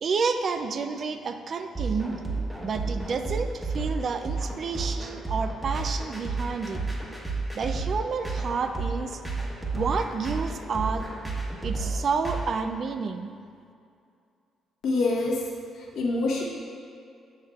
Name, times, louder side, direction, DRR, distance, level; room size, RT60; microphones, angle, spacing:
voice 1, 0.0-2.2 2.6-6.8 7.5-9.2 9.7-11.1 11.6-13.3, right 5 dB, 50° right, 8 dB, 0.4 m, -30 dB
sound 1, 1.7-12.4, right 3 dB, 5° right, 1.1 m, -31 dB
voice 2, 14.8-15.4 15.7-16.4, left 3 dB, 75° left, -3 dB, 1.1 m, -26 dB
7.2 x 6.4 x 2.4 m, 2.4 s
cardioid pair, 90°, 0 cm